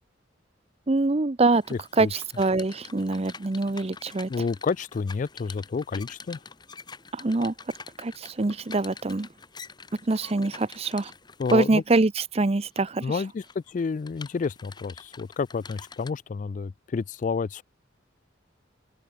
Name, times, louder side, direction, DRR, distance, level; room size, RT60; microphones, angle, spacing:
voice 1, 0.9-1.6 2.0-4.3 7.1-7.5 8.0-9.3 10.1-11.1 11.5-13.0, right 3 dB, 35° right, 0.6 m, -24 dB
sound 1, 1.6-11.9 12.5-12.9 13.3-16.1, left 5 dB, 20° left, 1.4 m, -46 dB
voice 2, 1.7-2.1 4.3-6.4 11.4-11.8 13.0-17.6, left 5 dB, 40° left, 0.3 m, -30 dB
open air
head